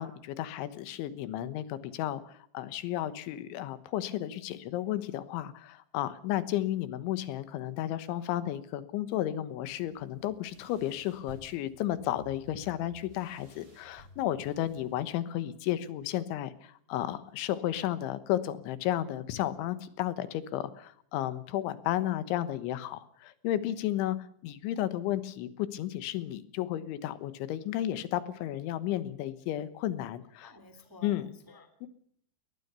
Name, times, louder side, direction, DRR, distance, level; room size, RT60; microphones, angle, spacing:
voice 1, 0.0-24.2 24.4-30.5 31.0-31.3 31.8-31.9, left 13 dB, 85° left, 14 dB, 3.6 m, -33 dB
sound 1, 9.8-15.1, right 3 dB, 30° right, 6.8 m, -55 dB
voice 2, 30.4-31.9, left 2 dB, 5° right, 9 dB, 1.6 m, -53 dB
20.5 x 19.5 x 6.9 m, 0.63 s
omnidirectional pair, 5.3 m